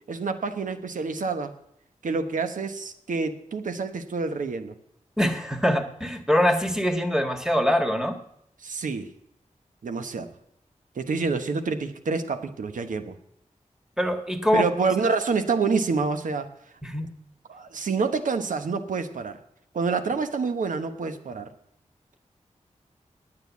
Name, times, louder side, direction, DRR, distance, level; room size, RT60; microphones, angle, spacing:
voice 1, 0.1-1.5 2.0-4.7 8.6-9.1 9.8-10.3 11.0-13.2 14.5-16.5 17.5-19.4 19.7-21.5, right 4 dB, 85° right, 9 dB, 1.0 m, -27 dB
voice 2, 5.2-8.2 14.0-14.7 16.8-17.1, equal, 5° right, 7 dB, 1.7 m, -23 dB
9.5 x 8.9 x 8.2 m, 0.73 s
cardioid pair, 55°, 13 cm